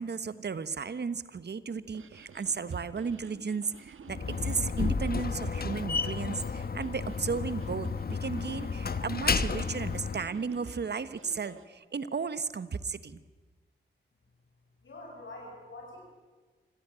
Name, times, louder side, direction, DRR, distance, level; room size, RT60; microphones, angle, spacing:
voice 1, 0.0-13.2, right 5 dB, 55° right, 14 dB, 1.2 m, -34 dB
sound 1, 1.8-11.7, right 6 dB, 75° right, 1.4 m, -52 dB
Slam, 4.1-10.3, left 5 dB, 45° left, 1.1 m, -32 dB
voice 2, 14.8-16.1, left 2 dB, 65° left, -1 dB, 7.6 m, -45 dB
25.5 x 15.5 x 9.0 m, 1.3 s
cardioid pair, 55°, 21 cm